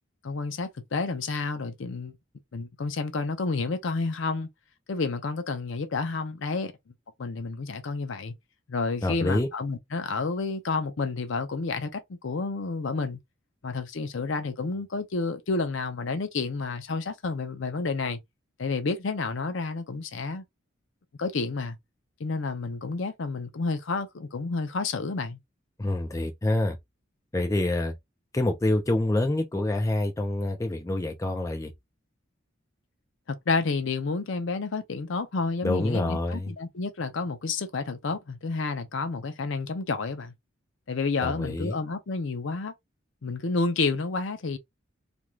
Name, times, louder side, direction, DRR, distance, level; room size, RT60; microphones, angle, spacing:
voice 1, 0.2-2.1 2.5-4.5 4.9-6.7 7.2-8.3 8.7-13.2 13.6-18.2 18.6-20.4 21.2-21.8 22.2-25.4 33.3-40.3 40.9-42.7 43.2-44.6, left 4 dB, 70° left, 0.5 m, -30 dB
voice 2, 9.0-9.5 25.8-26.8 27.3-27.9 28.3-31.7 35.6-36.5 41.2-41.8, left 1 dB, 15° left, 0.4 m, -26 dB
2.5 x 2.3 x 3.0 m
head